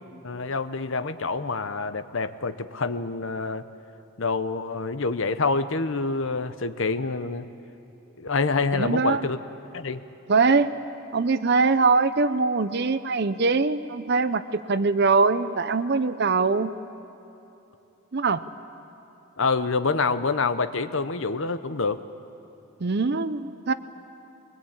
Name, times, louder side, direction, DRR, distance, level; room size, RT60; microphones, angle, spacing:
voice 1, 0.2-3.6 4.2-7.5 8.2-9.4 9.7-10.0 19.4-22.0, left 4 dB, 60° left, 11 dB, 0.8 m, -26 dB
voice 2, 8.7-9.3 10.3-10.8 11.1-16.7 18.1-18.4 22.8-23.7, right 4 dB, 50° right, 13 dB, 0.6 m, -22 dB
22.5 x 20.5 x 8.8 m, 2.9 s
head